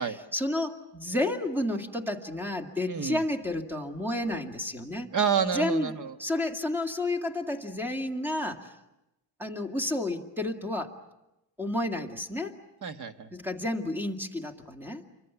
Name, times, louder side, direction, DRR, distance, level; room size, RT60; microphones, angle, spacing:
voice 1, 0.0-5.1 5.4-8.7 9.4-11.0 11.6-12.6 13.3-15.0, left 1 dB, 5° right, 4 dB, 2.1 m, -31 dB
voice 2, 2.9-3.2 5.1-6.1 12.8-13.3, right 7 dB, 45° right, 8 dB, 1.5 m, -28 dB
29.5 x 24.5 x 7.1 m, 0.93 s
cardioid pair, 145°, 41 cm